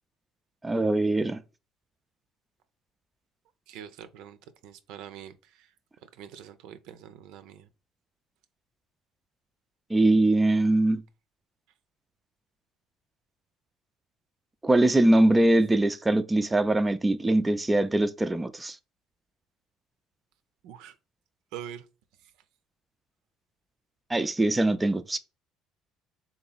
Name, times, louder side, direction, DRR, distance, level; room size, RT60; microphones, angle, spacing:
voice 1, 0.6-1.4 9.9-11.0 14.6-18.8 24.1-25.2, right 1 dB, 15° right, 0.4 m, -22 dB
voice 2, 3.7-4.4 4.6-5.7 6.2-7.7 20.6-20.9 21.5-21.8, right 9 dB, 80° right, 0.5 m, -44 dB
3.8 x 2.9 x 3.9 m
cardioid pair, 110°, 0 cm